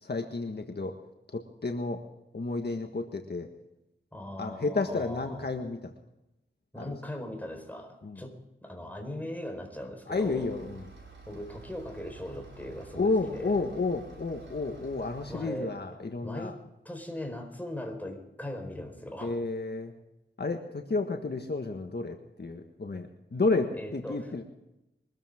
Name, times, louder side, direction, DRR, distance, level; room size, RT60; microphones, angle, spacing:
voice 1, 0.0-0.9 1.3-2.0 2.3-3.5 4.4-5.9 6.8-6.9 8.0-8.2 10.1-10.9 12.9-16.5 19.2-19.9 20.4-24.4, left 3 dB, 55° left, 3 dB, 1.6 m, -31 dB
voice 2, 4.1-5.5 6.7-10.5 11.3-13.6 15.3-15.8 16.2-16.6 16.8-19.4 23.7-24.4, left 1 dB, 10° left, 4 dB, 4.5 m, -39 dB
sound 1, 10.1-15.4, right 4 dB, 70° right, 5.8 m, -50 dB
23.5 x 14.0 x 3.7 m, 0.91 s
wide cardioid pair, 65°, 20 cm